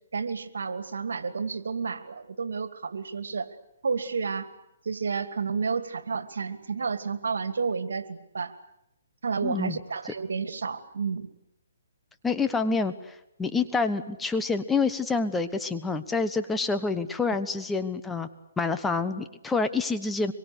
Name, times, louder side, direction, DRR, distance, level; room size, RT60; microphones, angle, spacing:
voice 1, 0.1-3.5 3.8-4.5 4.8-8.5 9.2-11.3, right 5 dB, 80° right, 10 dB, 2.6 m, -31 dB
voice 2, 9.4-9.8 12.2-18.3 18.6-20.3, left 4 dB, 5° left, 9 dB, 1.1 m, -27 dB
25.5 x 23.0 x 8.2 m, 0.83 s
hypercardioid pair, 160°, 0 cm